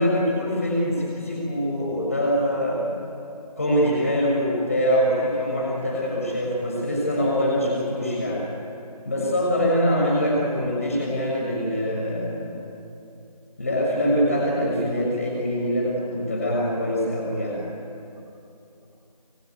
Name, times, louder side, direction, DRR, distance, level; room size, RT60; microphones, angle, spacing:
voice 1, 0.0-2.9 3.6-8.4 9.0-12.5 13.6-17.6, equal, 20° left, -3 dB, 6.4 m, -24 dB
25.5 x 24.0 x 9.7 m, 2.7 s
figure-of-eight pair, 175°, 21 cm